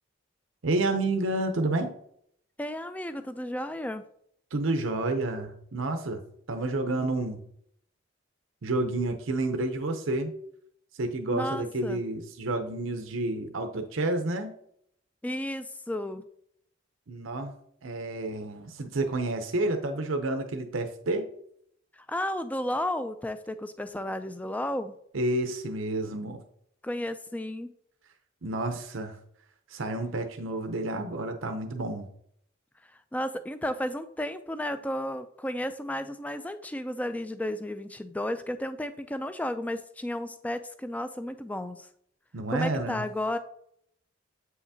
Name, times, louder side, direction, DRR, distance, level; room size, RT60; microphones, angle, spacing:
voice 1, 0.6-1.9 4.5-6.2 6.5-7.4 8.6-10.3 10.9-14.6 17.1-17.5 17.8-21.3 25.1-26.4 28.4-29.2 29.7-32.1 42.3-43.1, right 2 dB, 90° right, 5 dB, 0.7 m, -30 dB
voice 2, 2.6-4.0 11.3-12.0 15.2-16.3 21.9-25.0 26.8-27.7 33.1-41.9 42.5-43.4, left 1 dB, 10° left, 11 dB, 0.3 m, -33 dB
7.9 x 5.7 x 2.7 m, 0.69 s
head